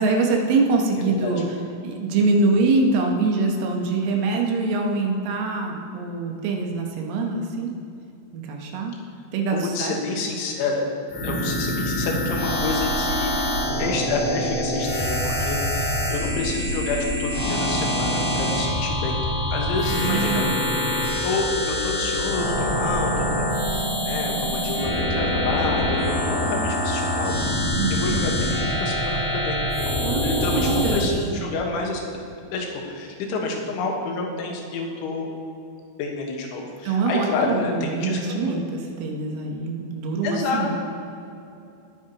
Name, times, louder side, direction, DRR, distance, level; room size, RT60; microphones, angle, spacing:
voice 1, 0.0-1.6 1.8-7.7 8.3-8.9 9.3-10.0 11.2-11.5 19.8-20.7 27.8-28.2 30.0-31.2 36.8-40.7, right 3 dB, 80° right, 1 dB, 3.6 m, -24 dB
voice 2, 1.0-1.4 9.5-10.8 11.2-13.5 13.8-19.2 19.5-20.5 21.2-27.3 27.9-32.2 32.5-35.3 36.0-38.6 40.2-40.7, left 3 dB, 75° left, 0 dB, 3.6 m, -29 dB
sound 1, 11.1-31.1, left 1 dB, 50° left, 4.0 m, -25 dB
19.0 x 9.3 x 3.0 m, 2.7 s
omnidirectional pair, 5.8 m